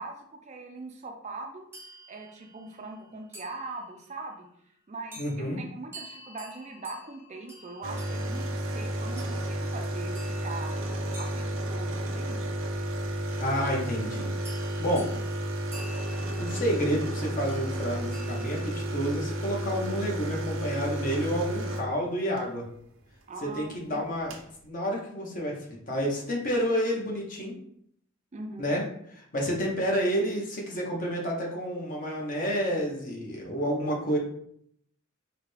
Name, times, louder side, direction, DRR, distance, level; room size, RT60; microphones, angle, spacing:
voice 1, 0.0-1.7 2.1-4.5 4.9-10.8 11.2-12.5 14.9-15.1 23.3-24.2 28.3-28.7, right 3 dB, 35° right, 3 dB, 0.4 m, -41 dB
sound 1, 1.7-4.2 5.1-5.4 5.9-12.3 13.8-14.1 14.4-18.9, right 1 dB, 10° right, 0.8 m, -50 dB
voice 2, 5.2-5.6 13.4-15.1 16.4-22.7 23.4-24.4 24.6-27.6 28.6-28.8 29.2-34.2, equal, 40° left, -2 dB, 1.0 m, -29 dB
sound 2, 7.8-22.5 23.8-23.9 24.0-24.5, right 1 dB, 85° right, 0.6 m, -32 dB
4.7 x 2.2 x 3.2 m, 0.68 s
head